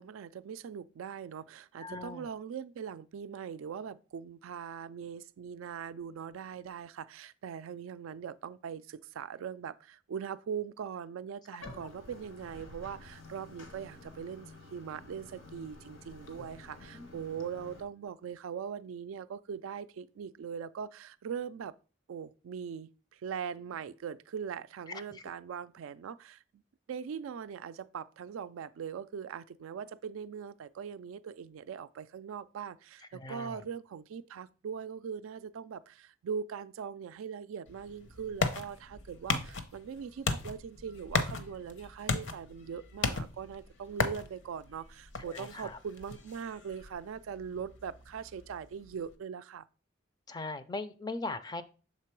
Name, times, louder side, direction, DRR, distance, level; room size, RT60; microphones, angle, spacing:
voice 1, 0.0-21.7 22.1-26.6 26.9-49.7, right 7 dB, 85° right, 0.3 m, -41 dB
voice 2, 1.8-2.3 11.6-11.7 16.9-17.1 24.9-25.2 33.1-33.6 45.2-45.8 50.3-51.6, left 3 dB, 20° left, 0.3 m, -40 dB
Bathtub (filling or washing), 11.6-17.8, left 2 dB, 80° left, 1.2 m, -51 dB
sound 1, 37.7-49.1, left 4 dB, 65° left, 0.7 m, -37 dB
6.6 x 3.7 x 4.5 m
head